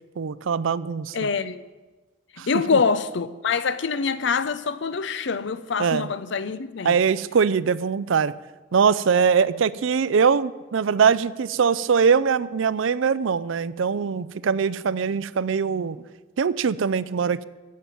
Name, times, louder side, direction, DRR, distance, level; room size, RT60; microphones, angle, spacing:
voice 1, 0.2-1.3 2.4-2.5 5.8-6.1 6.8-8.3 8.7-16.0 16.4-17.4, right 6 dB, 75° right, 0.5 m, -22 dB
voice 2, 1.1-1.7 2.3-7.0, left 5 dB, 65° left, 0.6 m, -25 dB
15.0 x 5.8 x 9.2 m
head